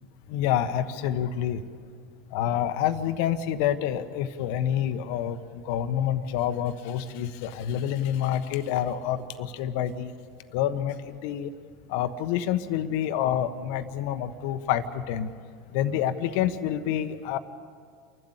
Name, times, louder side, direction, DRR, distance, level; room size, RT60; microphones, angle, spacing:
voice 1, 0.3-1.6 2.3-5.4 5.7-10.1 10.5-11.5 11.9-15.3 15.7-17.4, left 10 dB, 65° left, 10 dB, 1.1 m, -27 dB
29.0 x 12.0 x 8.3 m, 2.1 s
hypercardioid pair, 85°, 0 cm